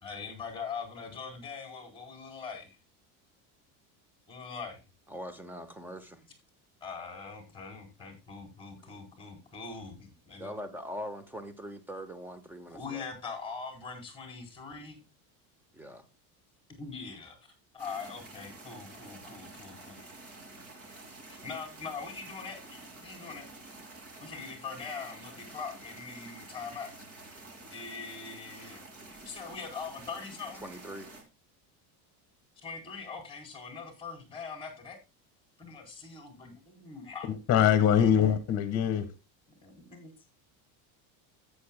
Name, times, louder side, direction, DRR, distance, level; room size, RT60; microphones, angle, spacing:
voice 1, 0.0-2.8 4.3-4.8 6.8-10.5 12.7-15.0 16.8-17.4 17.7-20.0 21.3-23.5 24.2-26.9 27.7-28.8 29.2-30.6 32.6-35.0 35.6-37.3 37.9-38.4 39.6-40.1, left 5 dB, 10° left, 4.3 m, -42 dB
voice 2, 5.1-6.3 10.4-13.1 15.7-16.0 30.6-31.1, equal, 5° right, 1.2 m, -42 dB
sound 1, 17.8-31.2, right 2 dB, 35° right, 2.7 m, -49 dB
voice 3, 37.5-39.1, left 9 dB, 35° left, 1.6 m, -23 dB
14.0 x 8.5 x 2.2 m
cardioid pair, 145°, 41 cm